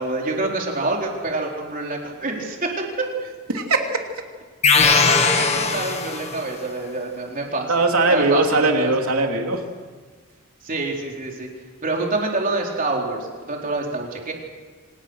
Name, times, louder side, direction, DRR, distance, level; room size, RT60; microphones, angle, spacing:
voice 1, 0.0-3.1 4.9-7.7 8.1-8.9 10.6-11.5 11.8-14.3, right 2 dB, 40° right, 0 dB, 4.1 m, -26 dB
voice 2, 3.5-3.8 7.7-9.6, right 2 dB, 85° right, 3 dB, 3.1 m, -19 dB
sound 1, 4.6-6.5, left 4 dB, 30° left, 1.7 m, -19 dB
26.0 x 19.0 x 6.5 m, 1.5 s
head